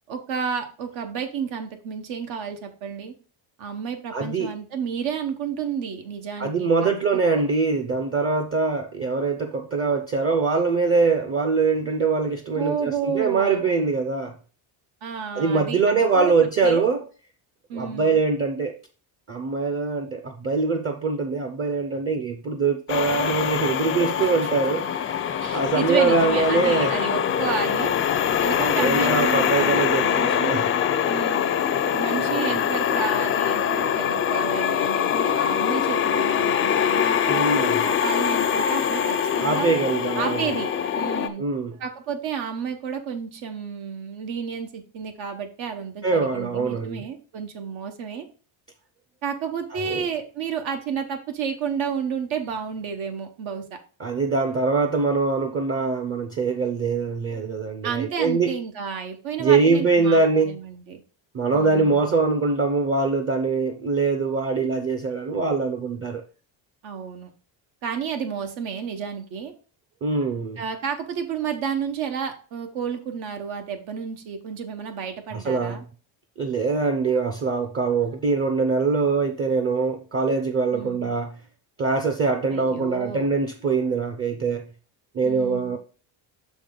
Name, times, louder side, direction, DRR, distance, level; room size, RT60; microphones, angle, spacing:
voice 1, 0.1-3.1 3.6-7.4 12.5-13.7 15.0-16.3 16.6-16.8 17.7-18.2 24.2-24.5 25.4-27.9 28.4-30.7 31.0-31.5 31.9-39.7 40.2-41.4 41.8-48.3 49.2-53.6 57.8-61.0 61.5-62.1 66.8-67.3 67.8-69.5 70.6-75.8 80.7-81.1 82.5-83.3 85.2-85.8, right 7 dB, 80° right, 1.3 m, -31 dB
voice 2, 4.1-4.5 6.4-14.4 15.3-17.1 17.7-18.7 19.3-27.0 28.8-30.7 32.1-32.6 37.3-37.9 39.4-40.5 41.4-41.8 46.0-47.0 49.7-50.1 54.0-58.6 59.4-60.6 61.3-66.2 70.0-70.6 75.3-75.9 76.4-81.4 81.8-84.7 85.1-85.8, right 4 dB, 30° right, 0.6 m, -23 dB
sound 1, 22.9-41.3, left 8 dB, 30° left, 0.4 m, -23 dB
6.4 x 5.3 x 3.8 m
cardioid pair, 140°, 46 cm